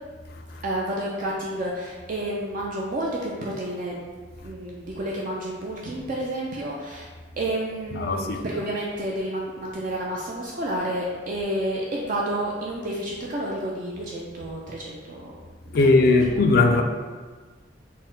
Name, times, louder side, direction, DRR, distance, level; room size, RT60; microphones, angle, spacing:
voice 1, 0.6-4.0 4.4-7.1 7.4-15.3 15.8-16.4, right 1 dB, 45° right, 0.4 m, -30 dB
voice 2, 7.9-8.4 15.7-16.8, left 3 dB, 50° left, 0.3 m, -19 dB
4.1 x 2.1 x 3.8 m
head